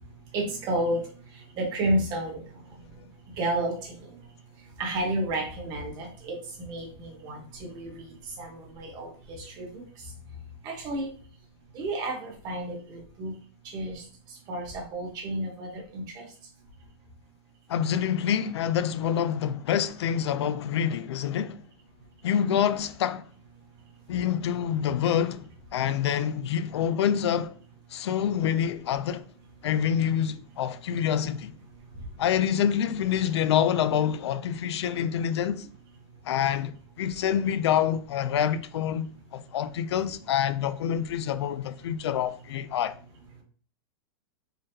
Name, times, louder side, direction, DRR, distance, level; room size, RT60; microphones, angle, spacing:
voice 1, 0.3-1.0 1.5-2.4 3.4-4.1 4.8-9.8 10.6-11.1 11.7-13.3 13.7-14.0 14.5-16.2, right 1 dB, 30° right, 1.1 m, -31 dB
voice 2, 17.7-21.6 22.2-23.2 24.1-27.5 27.9-29.3 29.6-31.5 32.2-35.7 36.3-42.9, left 9 dB, 80° left, 0.4 m, -27 dB
3.8 x 3.4 x 2.7 m
supercardioid pair, 160°, 14 cm